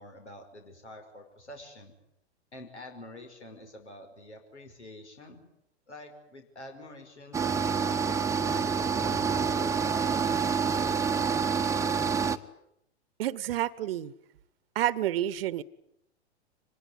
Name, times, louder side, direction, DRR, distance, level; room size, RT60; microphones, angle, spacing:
voice 1, 0.0-1.9 2.5-5.4 5.9-7.4 7.9-11.3, left 1 dB, 85° left, 5 dB, 5.6 m, -47 dB
sound 1, 7.3-12.4, right 6 dB, 10° right, 1.1 m, -27 dB
voice 2, 13.2-14.1 14.7-15.6, right 13 dB, 60° right, 19 dB, 1.1 m, -29 dB
25.0 x 20.5 x 9.8 m, 0.79 s
figure-of-eight pair, 105°, 33 cm